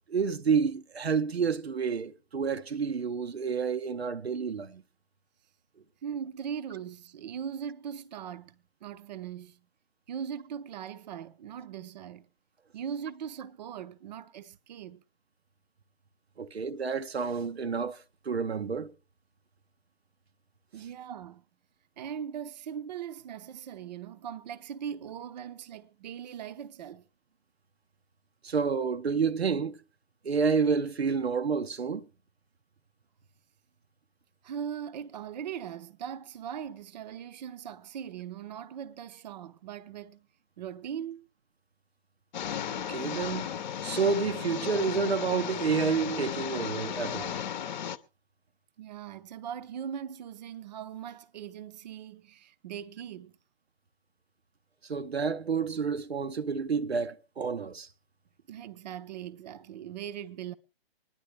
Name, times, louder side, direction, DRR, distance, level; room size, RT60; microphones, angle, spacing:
voice 1, 0.1-4.8 16.4-18.9 28.4-29.8 30.2-32.1 42.7-47.4 54.9-57.9, right 5 dB, 85° right, 0.7 m, -29 dB
voice 2, 6.0-9.7 10.1-12.3 12.7-15.0 20.7-21.4 22.0-27.1 34.4-40.3 40.6-41.3 48.8-53.3 58.5-60.5, right 8 dB, 45° right, 0.6 m, -40 dB
sound 1, 42.3-48.0, left 9 dB, 45° left, 0.8 m, -35 dB
25.5 x 10.5 x 3.3 m
figure-of-eight pair, 130°, 31 cm